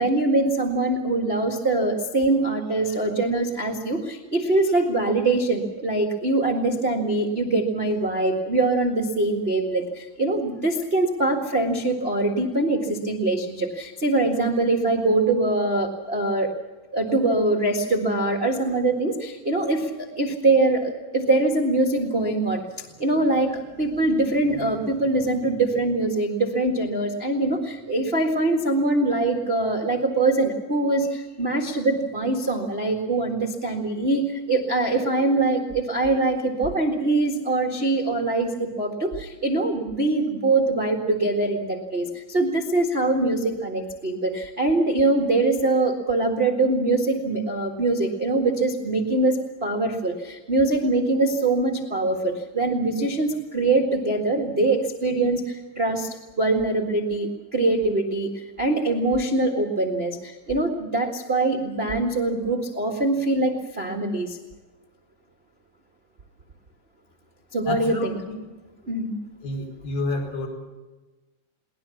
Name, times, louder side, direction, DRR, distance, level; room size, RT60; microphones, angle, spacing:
voice 1, 0.0-16.5 16.9-64.4 67.5-68.1 68.9-69.1, right 2 dB, 30° right, 1 dB, 1.0 m, -23 dB
voice 2, 67.7-68.1 69.4-70.5, left 2 dB, 80° left, 1 dB, 6.9 m, -29 dB
22.0 x 19.0 x 7.1 m, 1.2 s
omnidirectional pair, 4.1 m